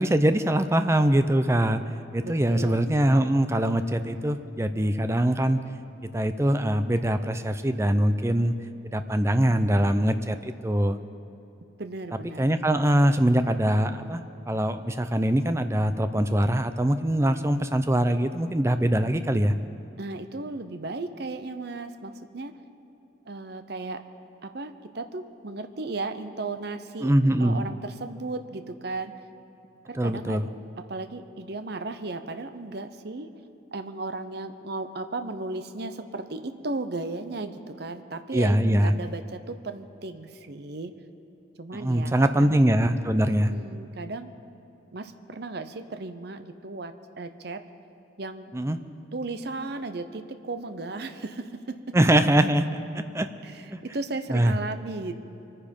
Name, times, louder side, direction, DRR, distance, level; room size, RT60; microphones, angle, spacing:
voice 1, 0.0-1.8 2.1-5.6 6.1-8.5 8.8-11.0 12.4-14.2 14.5-19.5 27.0-27.6 29.9-30.5 38.3-38.9 41.7-43.5 48.5-48.8 51.9-53.3 53.7-53.8 54.3-54.5, right 1 dB, 15° right, 9 dB, 0.5 m, -23 dB
voice 2, 2.2-2.9 11.8-12.5 20.0-22.5 23.3-24.0 24.4-27.1 27.4-29.1 29.9-30.4 30.8-33.3 33.7-40.9 41.6-42.6 43.5-44.3 44.9-47.6 48.2-48.5 49.1-51.9 53.4-55.1, right 3 dB, 55° right, 9 dB, 0.7 m, -35 dB
24.0 x 9.9 x 5.3 m, 2.9 s
head